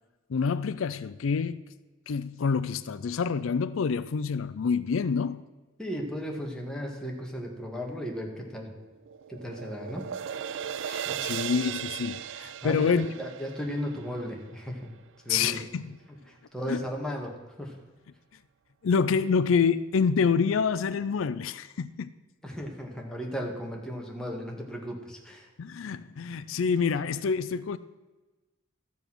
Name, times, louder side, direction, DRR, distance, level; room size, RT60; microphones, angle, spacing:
voice 1, 0.3-1.6 2.1-5.4 10.9-13.1 15.3-15.8 16.7-16.8 18.8-22.1 25.6-27.8, left 5 dB, 75° left, 0.4 m, -27 dB
voice 2, 5.8-8.7 9.3-10.0 11.0-11.2 12.6-14.9 15.2-15.6 16.1-17.8 22.4-25.5, equal, 5° left, 1.8 m, -35 dB
sound 1, 8.5-14.9, right 9 dB, 65° right, 0.4 m, -37 dB
13.5 x 7.1 x 6.1 m
head